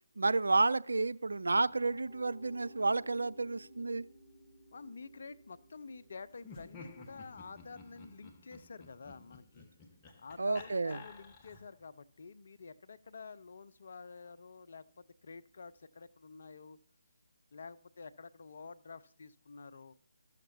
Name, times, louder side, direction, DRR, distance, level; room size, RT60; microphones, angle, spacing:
voice 1, 0.2-4.0 10.4-11.0, right 3 dB, 70° right, 0.4 m, -31 dB
Piano, 1.3-13.2, equal, 10° right, 2.0 m, -61 dB
voice 2, 4.7-9.7 10.2-16.8 17.5-19.9, left 4 dB, 55° left, 0.6 m, -49 dB
Laughter, 6.4-11.8, left 4 dB, 20° left, 1.2 m, -53 dB
14.0 x 6.6 x 4.2 m
figure-of-eight pair, 145°, 0 cm